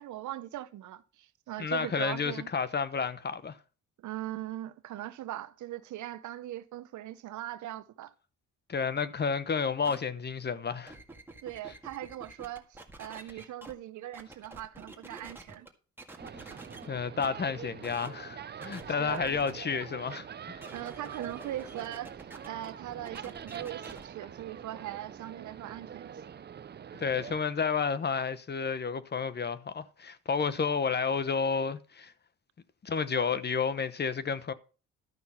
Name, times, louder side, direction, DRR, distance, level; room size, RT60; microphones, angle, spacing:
voice 1, 0.0-2.5 4.0-8.1 11.4-15.7 18.9-19.3 20.7-26.2, right 13 dB, 75° right, 0.8 m, -40 dB
voice 2, 1.6-3.6 8.7-11.0 16.8-20.6 27.0-32.1 32.8-34.5, left 5 dB, 35° left, 0.9 m, -31 dB
sound 1, 9.8-10.0 10.7-13.7 14.1-15.7 16.0-16.9 17.2-17.3 17.8-18.1 18.6-19.5 20.5-24.0, right 2 dB, 5° right, 1.8 m, -48 dB
sound 2, 16.2-27.4, right 8 dB, 35° right, 0.6 m, -45 dB
12.5 x 5.8 x 5.7 m
cardioid pair, 90°, 30 cm